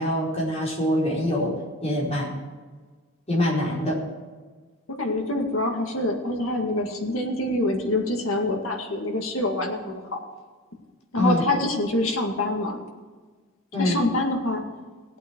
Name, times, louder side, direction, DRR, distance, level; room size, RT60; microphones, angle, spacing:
voice 1, 0.0-1.5 1.8-2.3 3.3-4.0 11.2-11.4 13.7-14.0, left 1 dB, 30° left, -5 dB, 4.8 m, -24 dB
voice 2, 4.9-10.2 11.1-12.8 13.8-14.6, left 1 dB, 75° left, 2 dB, 2.1 m, -26 dB
18.0 x 8.4 x 4.7 m, 1.4 s
head